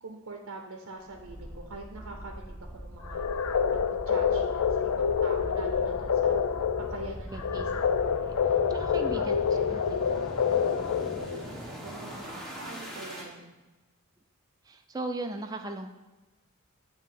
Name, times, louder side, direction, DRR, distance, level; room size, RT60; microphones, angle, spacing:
voice 1, 0.0-3.3 3.7-6.4 6.8-7.7 8.0-8.3 8.7-9.9 10.9-11.5 11.8-13.5, right 2 dB, 75° right, 2 dB, 0.7 m, -44 dB
sound 1, 1.1-13.3, equal, ahead, 1.0 m, -41 dB
sound 2, 3.1-11.5, left 7 dB, 85° left, 0.4 m, -27 dB
voice 2, 7.3-7.7 8.2-8.3 8.7-9.3 9.6-10.9 14.6-15.9, right 2 dB, 15° right, 4 dB, 0.4 m, -38 dB
8.3 x 3.0 x 5.7 m, 1.1 s
head